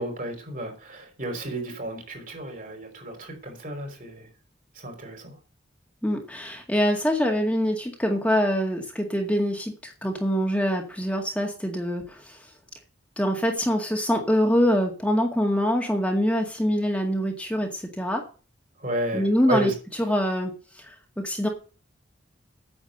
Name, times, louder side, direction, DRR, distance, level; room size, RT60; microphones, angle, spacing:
voice 1, 0.0-4.3 4.7-5.4 18.8-19.7, right 1 dB, 45° right, 3 dB, 5.2 m, -32 dB
voice 2, 6.0-12.5 13.2-18.2 19.1-19.7 20.0-21.5, equal, 5° left, 1 dB, 2.0 m, -24 dB
9.8 x 7.9 x 8.0 m, 0.36 s
head